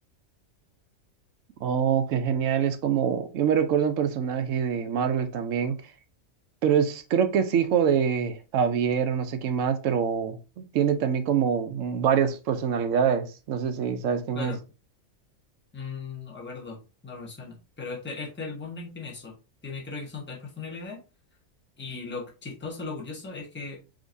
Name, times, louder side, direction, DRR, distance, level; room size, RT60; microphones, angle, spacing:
voice 1, 1.6-5.8 6.6-14.5, right 7 dB, 70° right, 0.9 m, -25 dB
voice 2, 15.7-19.4 19.6-21.0 21.8-23.8, left 4 dB, 10° left, 0.8 m, -37 dB
5.0 x 2.9 x 2.6 m
omnidirectional pair, 1.4 m